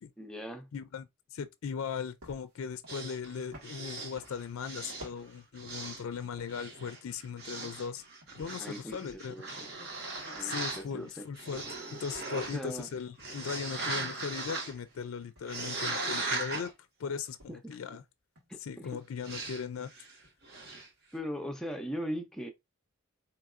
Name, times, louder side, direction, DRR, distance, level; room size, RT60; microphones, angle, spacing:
voice 1, 0.2-0.7 8.6-9.7 10.3-11.2 12.3-12.9 17.5-17.8 18.5-18.9 21.1-22.5, equal, 5° left, 0.5 m, -39 dB
voice 2, 0.7-8.0 8.4-9.3 10.4-16.7 17.0-18.0 18.6-19.9, left 6 dB, 70° left, 0.4 m, -38 dB
sound 1, 2.2-6.8 7.1-11.7 11.9-14.3 14.8-15.0 15.3-16.7 17.1-17.9 18.3-18.6 19.6-19.9 20.2-20.6 20.9-21.0 21.3-21.7, equal, 80° right, 1.8 m, -56 dB
sound 2, 2.9-5.2 5.5-6.2 6.5-10.8 11.3-12.9 13.2-14.8 15.4-16.7 19.2-19.6 19.9-20.1 20.4-20.9, right 3 dB, 45° right, 1.1 m, -38 dB
4.6 x 3.0 x 2.4 m
head